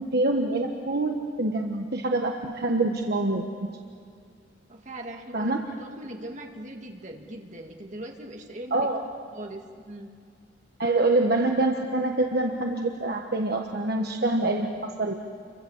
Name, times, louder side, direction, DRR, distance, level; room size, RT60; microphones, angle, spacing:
voice 1, 0.0-3.7 5.3-5.7 8.7-9.0 10.8-15.1, right 2 dB, 55° right, 2 dB, 1.4 m, -25 dB
voice 2, 4.7-8.9 9.3-10.1 14.0-14.1, right 1 dB, 40° right, 2 dB, 2.2 m, -40 dB
29.5 x 24.0 x 7.3 m, 2.3 s
head